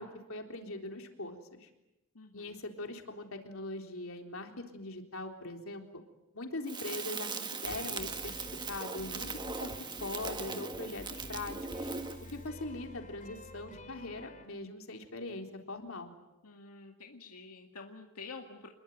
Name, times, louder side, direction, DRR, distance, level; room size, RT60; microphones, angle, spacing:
voice 1, 0.0-1.7 2.3-5.9 6.3-9.7 10.0-11.9 12.3-16.1, left 2 dB, 65° left, 4 dB, 3.8 m, -41 dB
voice 2, 2.1-2.6 16.4-18.7, left 4 dB, 85° left, 2 dB, 2.1 m, -48 dB
Crackle, 6.7-12.4, right 4 dB, 20° right, 1.7 m, -39 dB
sound 1, 7.6-14.5, left 1 dB, 35° left, 2.4 m, -50 dB
28.0 x 22.0 x 9.3 m, 0.95 s
head